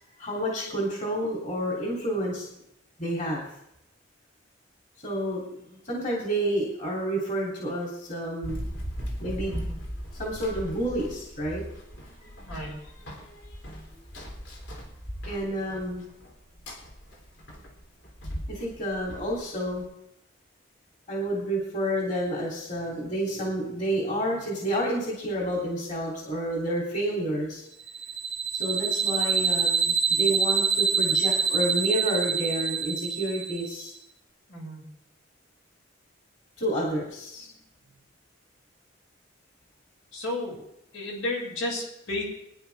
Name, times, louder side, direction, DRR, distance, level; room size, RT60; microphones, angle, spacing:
voice 1, 0.2-2.4 3.0-3.4 5.0-8.7 9.2-9.6 10.1-11.6 15.3-16.0 18.5-19.8 21.1-27.6 28.5-33.9 36.6-37.5, right 1 dB, 40° left, -3 dB, 3.2 m, -29 dB
Run, 8.4-19.8, equal, 60° left, 3.4 m, -39 dB
voice 2, 9.4-9.7 12.5-12.8 34.5-34.8 40.1-40.6 40.9-42.2, left 2 dB, 80° left, -2 dB, 6.4 m, -32 dB
sound 1, 27.9-33.8, right 6 dB, 30° right, 0.7 m, -26 dB
22.0 x 10.5 x 3.6 m, 0.79 s
head